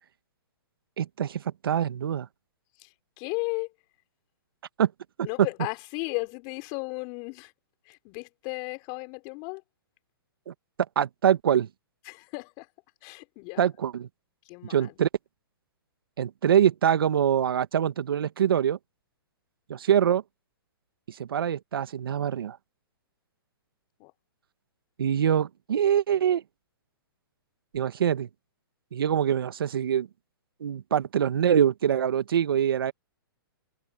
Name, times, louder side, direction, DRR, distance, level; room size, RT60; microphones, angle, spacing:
voice 1, 1.0-2.3 4.8-4.9 10.5-10.6 11.0-11.7 13.6-14.1 14.7-15.1 16.2-18.8 19.7-20.2 21.1-22.6 25.0-26.4 27.7-28.3 28.9-30.1 30.6-32.9, right 9 dB, 70° right, 1.7 m, -24 dB
voice 2, 2.8-3.7 5.2-7.5 7.9-9.6 12.1-12.7 13.0-13.7 14.5-14.9 24.0-24.1, left 32 dB, 35° left, 5.6 m, -35 dB
hypercardioid pair, 135°, 12 cm